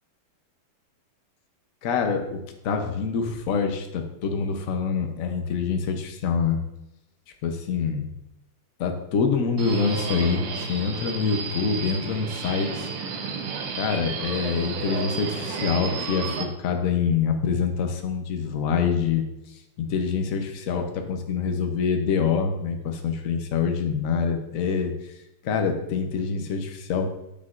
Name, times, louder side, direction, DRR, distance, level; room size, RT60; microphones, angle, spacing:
voice 1, 1.8-6.6 7.4-8.1 8.8-12.9 13.8-19.2 19.8-24.9 25.4-27.2, left 6 dB, 60° left, 5 dB, 0.9 m, -25 dB
Subway metro underground, 9.6-16.4, right 5 dB, 90° right, 1.7 m, -32 dB
8.4 x 6.6 x 2.5 m, 0.88 s
omnidirectional pair, 2.4 m